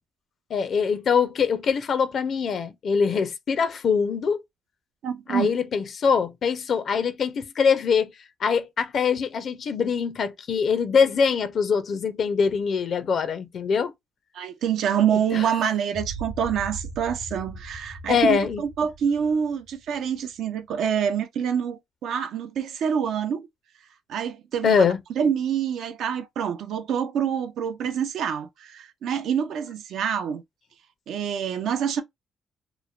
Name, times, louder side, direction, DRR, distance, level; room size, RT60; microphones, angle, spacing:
voice 1, 0.5-4.4 5.3-8.1 8.4-13.9 15.3-15.4 18.1-18.6 24.6-25.0, left 6 dB, 60° left, 0.5 m, -23 dB
voice 2, 5.0-5.5 14.3-23.5 24.1-24.9 25.2-30.4 31.1-32.0, right 8 dB, 75° right, 0.4 m, -26 dB
sound 1, 15.9-20.3, right 3 dB, 60° right, 1.0 m, -39 dB
3.0 x 2.1 x 2.3 m
cardioid pair, 90°, 0 cm